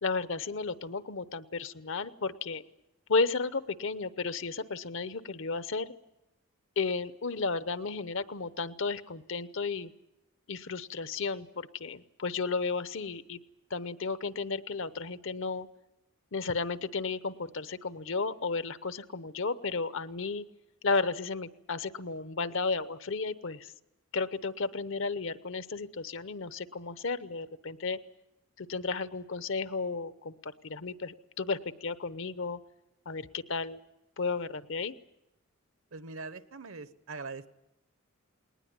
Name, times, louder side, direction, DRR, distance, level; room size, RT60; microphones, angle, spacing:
voice 1, 0.0-2.6 3.1-5.9 6.8-9.9 10.5-13.4 13.7-15.7 16.3-20.5 20.8-23.7 24.1-28.0 28.6-32.6 33.1-33.8 34.2-34.9, left 4 dB, 60° left, 14 dB, 0.9 m, -33 dB
voice 2, 35.9-37.5, right 4 dB, 65° right, 13 dB, 1.0 m, -42 dB
19.5 x 19.5 x 9.6 m, 0.91 s
head